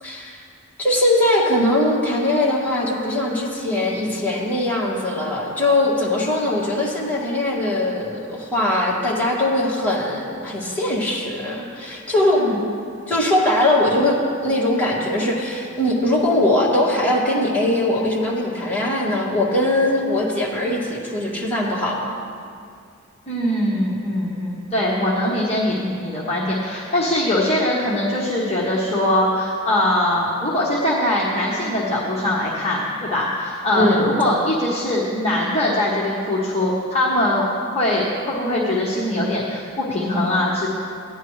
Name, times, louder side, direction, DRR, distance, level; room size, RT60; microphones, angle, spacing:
voice 1, 0.0-0.4 0.8-12.4 13.1-22.1 33.8-34.1, left 1 dB, 10° left, -7 dB, 2.0 m, -21 dB
voice 2, 23.3-37.5 37.7-40.7, left 1 dB, 30° left, -6 dB, 1.2 m, -22 dB
15.0 x 10.0 x 3.2 m, 2.4 s
head